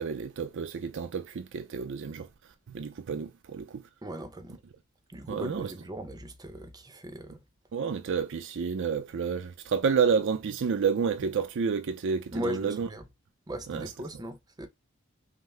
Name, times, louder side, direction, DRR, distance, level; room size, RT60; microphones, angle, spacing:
voice 1, 0.0-2.3 2.7-3.8 5.3-5.7 7.7-12.9 13.7-13.9, right 6 dB, 60° right, 0.4 m, -30 dB
voice 2, 4.0-4.6 5.1-7.4 12.3-13.1 13.5-14.7, right 1 dB, 20° right, 0.6 m, -38 dB
5.6 x 2.0 x 3.2 m
head